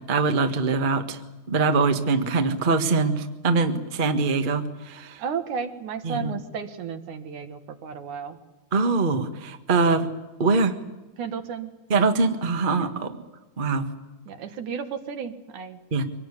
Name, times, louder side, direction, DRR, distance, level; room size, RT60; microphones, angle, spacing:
voice 1, 0.1-1.2 1.5-5.2 6.0-6.3 8.7-10.1 10.4-10.7 11.9-13.2 13.6-13.9 15.9-16.0, right 4 dB, 30° right, 7 dB, 1.0 m, -23 dB
voice 2, 5.2-8.4 11.2-11.7 12.7-12.9 14.3-15.8, right 6 dB, 75° right, 8 dB, 3.1 m, -33 dB
24.5 x 19.0 x 9.9 m, 1.1 s
omnidirectional pair, 3.5 m